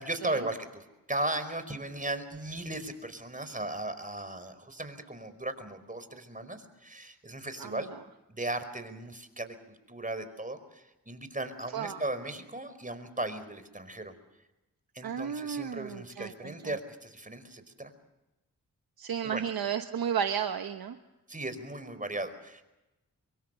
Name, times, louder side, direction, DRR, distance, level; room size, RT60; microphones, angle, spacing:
voice 1, 0.0-7.9 8.3-14.1 14.9-17.9 19.2-19.5 21.3-22.6, right 2 dB, 20° right, 10 dB, 4.9 m, -37 dB
voice 2, 15.0-16.5 19.0-21.0, right 8 dB, 80° right, 7 dB, 1.2 m, -33 dB
24.5 x 23.5 x 6.9 m, 1.0 s
cardioid pair, 45°, 36 cm